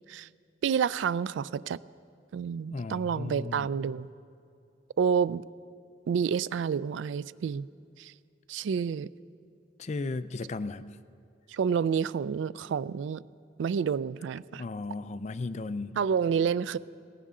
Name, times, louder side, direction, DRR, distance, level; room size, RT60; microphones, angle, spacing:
voice 1, 0.6-1.8 2.3-4.1 5.0-5.4 6.1-7.7 8.0-8.1 8.5-9.1 11.5-13.2 13.6-14.6 16.0-16.8, right 7 dB, 75° right, 19 dB, 0.3 m, -29 dB
voice 2, 2.7-3.7 9.8-10.9 14.6-16.0, left 3 dB, 35° left, 13 dB, 0.4 m, -35 dB
18.5 x 16.0 x 3.7 m, 2.4 s
head